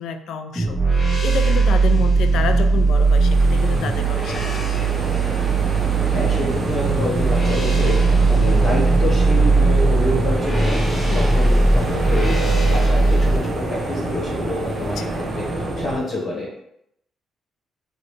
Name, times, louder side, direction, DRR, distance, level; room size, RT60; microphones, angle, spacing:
voice 1, 0.0-4.9 11.1-11.3, left 6 dB, 75° left, 8 dB, 0.3 m, -29 dB
sound 1, 0.6-13.4, right 3 dB, 15° left, 1.1 m, -18 dB
sound 2, 2.9-16.0, right 2 dB, 35° right, 0.8 m, -26 dB
voice 2, 5.9-16.6, left 1 dB, 45° left, -4 dB, 1.1 m, -28 dB
3.9 x 2.2 x 3.2 m, 0.78 s
cardioid pair, 90°, 0 cm